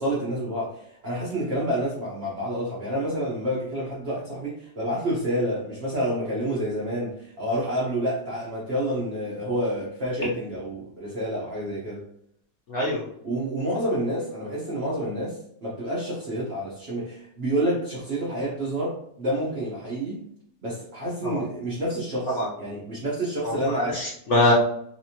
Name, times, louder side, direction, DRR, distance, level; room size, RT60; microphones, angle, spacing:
voice 1, 0.0-12.0 13.2-20.2 20.6-24.0, right 1 dB, 45° right, -7 dB, 1.0 m, -28 dB
voice 2, 12.7-13.0 21.2-21.4 22.3-22.5 23.4-24.5, left 1 dB, 55° left, -5 dB, 0.9 m, -23 dB
3.3 x 3.2 x 2.8 m, 0.72 s
omnidirectional pair, 1.9 m